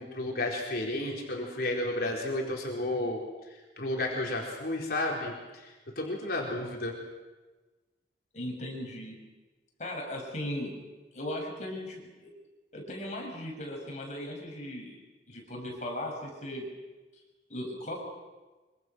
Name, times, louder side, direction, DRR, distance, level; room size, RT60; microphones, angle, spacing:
voice 1, 0.0-7.0, left 1 dB, 60° left, -2 dB, 4.5 m, -32 dB
voice 2, 8.3-9.2 9.8-10.8 11.1-12.3 12.7-15.0 15.3-16.7 17.5-18.0, left 1 dB, 40° left, 0 dB, 7.3 m, -37 dB
26.0 x 25.5 x 6.3 m, 1.2 s
head